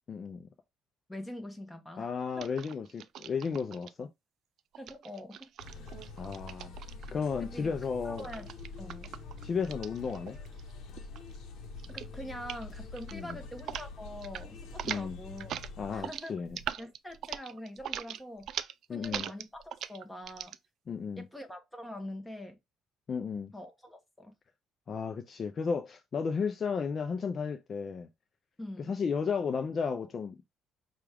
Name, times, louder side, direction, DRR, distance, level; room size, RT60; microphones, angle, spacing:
voice 1, 0.1-0.4 2.0-4.1 6.2-6.7 7.1-8.3 9.4-10.4 13.1-13.4 14.8-15.2 15.8-16.6 18.9-19.3 20.9-21.3 23.1-23.5 24.9-28.1 28.8-30.4, left 5 dB, 40° left, 0.5 m, -33 dB
voice 2, 1.1-2.1 2.4-2.5 4.8-5.5 7.4-7.7 8.0-8.5 8.8-9.1 11.9-15.6 15.9-16.4 16.8-18.5 18.9-20.5 21.2-22.6 23.5-24.3 28.6-28.9, left 1 dB, 5° left, 1.0 m, -44 dB
sound 1, 2.4-3.9 4.7-7.3 8.2-10.7 11.0-11.4 11.8-12.1 12.4-12.6 13.0-13.9 14.1-14.4 14.7-20.6, right 10 dB, 60° right, 0.3 m, -41 dB
sound 2, 5.6-16.0, left 3 dB, 65° left, 0.9 m, -45 dB
5.9 x 2.4 x 3.4 m
cardioid pair, 125°, 0 cm